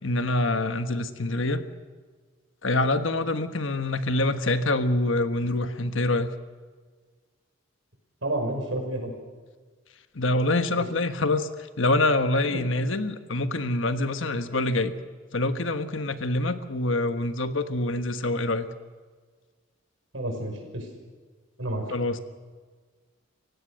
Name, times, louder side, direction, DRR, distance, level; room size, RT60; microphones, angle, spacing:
voice 1, 0.0-1.6 2.6-6.3 10.1-11.5 11.8-14.9 15.3-18.7 21.9-22.2, left 2 dB, 75° left, 10 dB, 1.4 m, -25 dB
voice 2, 8.2-9.2 10.8-10.9 12.5-12.6 20.1-20.9 21.6-21.8, right 1 dB, 75° right, 2 dB, 5.6 m, -30 dB
28.5 x 16.5 x 6.5 m, 1.5 s
head